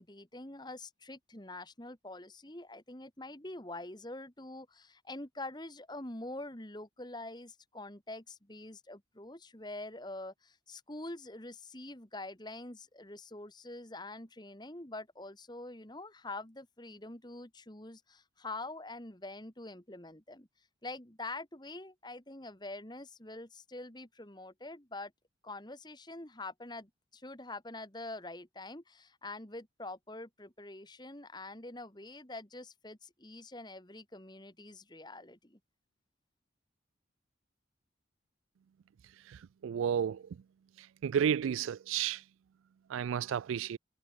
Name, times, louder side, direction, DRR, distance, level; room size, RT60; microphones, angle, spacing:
voice 1, 0.0-20.5 20.8-25.1 25.4-35.6, left 2 dB, 20° left, 2.2 m, -45 dB
voice 2, 39.6-40.2 41.0-42.2 42.9-43.8, right 8 dB, 90° right, 0.3 m, -31 dB
head